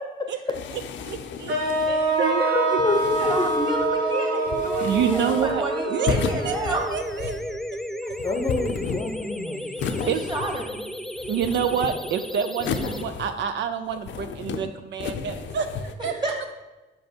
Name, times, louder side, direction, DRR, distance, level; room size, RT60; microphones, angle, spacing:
sound 1, 0.5-2.0 2.8-3.9 4.4-5.6 6.1-7.5 8.1-9.3 9.8-10.8 11.2-12.1 12.6-13.6 13.9-14.6 15.0-15.9, left 6 dB, 70° left, 0.6 m, -33 dB
voice 1, 0.7-1.5 1.9-2.4 4.8-5.6 5.9-6.2 6.4-7.6 7.9-8.0 10.1-10.2 11.3-16.1, right 8 dB, 65° right, 8 dB, 0.4 m, -28 dB
sound 2, 1.5-7.5, right 3 dB, 80° right, 1.3 m, -27 dB
voice 2, 1.8-6.9 8.0-8.1 10.0-10.7 16.0-16.5, right 2 dB, 25° right, 0 dB, 1.9 m, -30 dB
voice 3, 2.5-3.7 8.2-9.7, left 2 dB, 20° left, 4 dB, 0.7 m, -27 dB
sound 3, 3.0-13.0, left 1 dB, ahead, 0.3 m, -32 dB
5.4 x 5.3 x 4.4 m, 1.1 s
cardioid pair, 90°, 20 cm